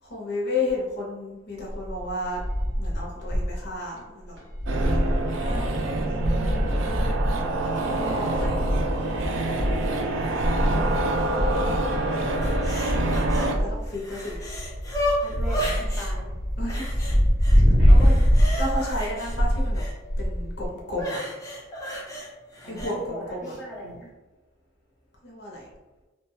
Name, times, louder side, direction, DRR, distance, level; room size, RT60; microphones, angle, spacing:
voice 1, 0.0-2.4 2.8-4.3 5.3-5.7 7.8-8.7 12.9-14.4 16.6-17.0 17.5-18.3 18.6-19.8 20.2-21.2 22.7-23.5 25.2-25.7, left 2 dB, 60° left, -2 dB, 0.6 m, -33 dB
sound 1, 1.7-3.6 4.0-4.1 4.4-20.7, equal, 70° right, 0.9 m, -24 dB
sound 2, 4.7-13.5, right 2 dB, 90° right, 0.4 m, -27 dB
voice 2, 5.8-6.9 10.6-11.8 15.2-16.3 17.8-18.2 22.6-24.1, right 1 dB, ahead, -8 dB, 0.9 m, -38 dB
sound 3, 12.4-13.5 13.9-16.1 16.7-17.6 17.9-19.9 20.9-22.9 23.4-23.6, equal, 15° left, 0.7 m, -33 dB
2.7 x 2.2 x 3.0 m, 1.1 s
head